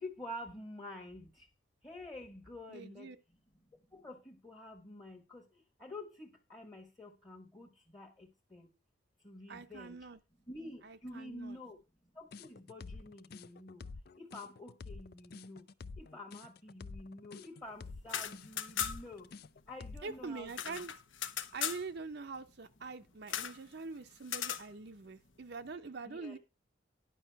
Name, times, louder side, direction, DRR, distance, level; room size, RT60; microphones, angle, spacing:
voice 1, 0.0-1.3 1.8-3.1 3.9-5.4 5.8-7.7 7.9-8.7 9.2-10.0 10.5-11.8 12.2-13.8 14.2-15.6 16.0-19.3 19.7-20.8 26.0-26.4, left 1 dB, 20° left, 1.2 m, -48 dB
voice 2, 2.7-3.2 9.5-10.2 10.8-11.6 20.0-20.9 21.5-26.4, right 4 dB, 55° right, 0.6 m, -44 dB
sound 1, 12.3-20.2, left 4 dB, 50° left, 0.4 m, -48 dB
sound 2, 18.0-19.2 19.5-19.6 19.8-21.8 23.3-23.6 24.2-24.7, left 9 dB, 75° left, 0.8 m, -38 dB
11.0 x 5.4 x 5.7 m
head